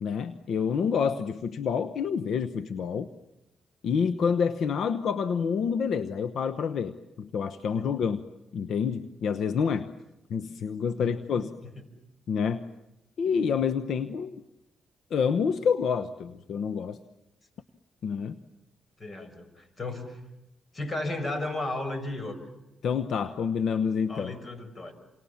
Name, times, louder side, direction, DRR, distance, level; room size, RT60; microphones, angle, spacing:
voice 1, 0.0-3.1 3.8-8.2 8.5-9.9 10.3-11.5 12.3-12.7 13.2-14.4 15.1-17.0 18.0-18.4 22.8-24.3, left 6 dB, 70° left, 11 dB, 1.0 m, -28 dB
voice 2, 11.0-11.5 19.0-20.2 20.7-22.4 24.1-24.9, left 2 dB, 35° left, 10 dB, 6.6 m, -34 dB
29.0 x 27.5 x 7.2 m, 0.90 s
cardioid pair, 75°, 0 cm